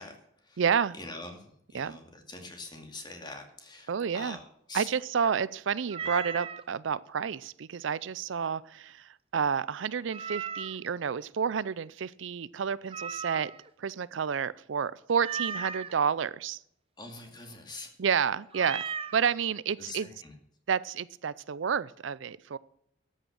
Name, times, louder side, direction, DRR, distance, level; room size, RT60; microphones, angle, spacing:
voice 1, 0.0-0.6 0.9-4.4 4.7-4.9 5.2-5.3 6.0-6.2 17.0-17.9 18.5-18.7 19.9-20.3, left 2 dB, 25° left, 4 dB, 2.3 m, -44 dB
voice 2, 0.6-0.9 1.7-2.0 3.9-4.4 4.7-13.5 13.8-16.6 18.0-18.8 19.1-20.1 20.7-22.6, right 7 dB, 75° right, 19 dB, 0.5 m, -30 dB
Meow, 5.9-6.6 10.1-10.9 12.9-13.7 15.2-15.9 18.5-19.2, right 6 dB, 30° right, 0.6 m, -36 dB
13.0 x 8.8 x 6.4 m, 0.72 s
head